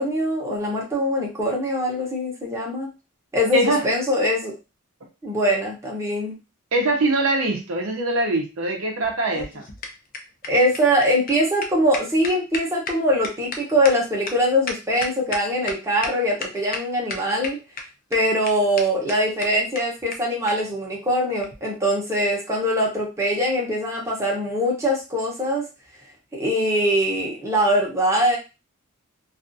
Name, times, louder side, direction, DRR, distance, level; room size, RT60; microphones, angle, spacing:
voice 1, 0.0-2.9 3.3-4.5 5.2-6.4 10.5-17.6 18.1-25.6 26.3-28.4, equal, 15° right, -3 dB, 0.7 m, -22 dB
voice 2, 3.5-3.9 6.7-9.6, right 2 dB, 65° right, 2 dB, 0.6 m, -22 dB
sound 1, 9.0-15.7 16.0-16.1 16.4-16.8 17.1-17.8 18.1-18.2 18.5-18.6 18.8-18.9 19.1-19.2 19.4-19.5 19.7-19.8 20.1-20.2 20.5-20.6 21.4-21.6, left 4 dB, 40° left, 0.4 m, -32 dB
2.4 x 2.3 x 2.6 m, 0.29 s
head